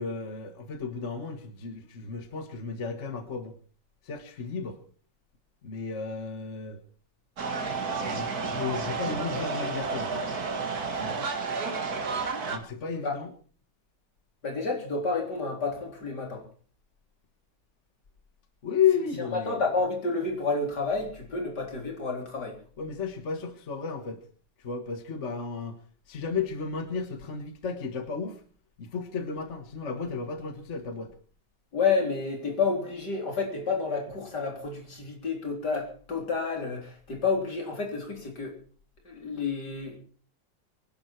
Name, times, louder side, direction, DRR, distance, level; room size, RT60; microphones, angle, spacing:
voice 1, 0.0-3.6 4.0-4.8 5.6-6.8 7.7-10.2 10.9-11.2 12.4-13.3 18.6-19.7 22.8-24.2 24.6-25.8 26.1-28.4 28.8-31.1, left 6 dB, 45° left, 8 dB, 1.6 m, -33 dB
sound 1, 7.4-12.6, right 4 dB, 55° right, 2.4 m, -31 dB
voice 2, 14.4-16.4 19.2-22.6 31.7-38.5 39.0-40.0, left 4 dB, 65° left, 2 dB, 4.2 m, -30 dB
24.0 x 11.5 x 4.5 m, 0.43 s
omnidirectional pair, 1.9 m